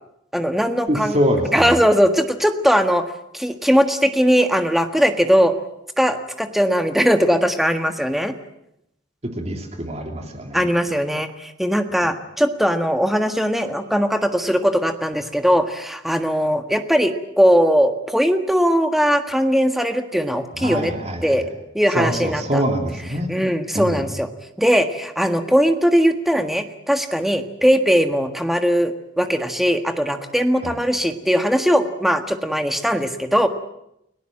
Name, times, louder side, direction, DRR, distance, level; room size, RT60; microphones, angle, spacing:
voice 1, 0.3-1.2 1.5-3.0 3.3-5.5 6.0-8.3 10.5-20.9 21.2-21.5 21.7-22.6 23.3-24.3 24.6-33.5, equal, ahead, 7 dB, 1.6 m, -19 dB
voice 2, 0.9-1.8 9.2-10.7 20.6-21.5 21.9-23.3 23.7-24.0 30.6-30.8, equal, 35° right, 4 dB, 3.3 m, -24 dB
30.0 x 18.0 x 7.6 m, 0.80 s
head